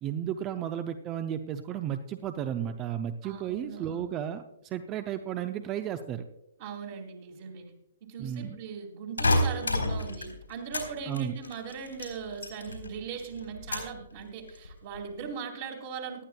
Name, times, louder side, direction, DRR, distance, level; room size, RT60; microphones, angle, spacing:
voice 1, 0.0-6.2 8.2-8.6 11.1-11.4, right 9 dB, 25° right, 9 dB, 0.6 m, -33 dB
voice 2, 3.2-4.1 6.6-7.7 8.0-16.2, right 6 dB, 40° right, 1 dB, 2.1 m, -39 dB
sound 1, 9.2-10.9 11.1-12.9 13.2-14.0 14.5-15.0, left 1 dB, 75° left, 3.7 m, -29 dB
18.5 x 11.5 x 2.3 m, 0.83 s
figure-of-eight pair, 120°, 0 cm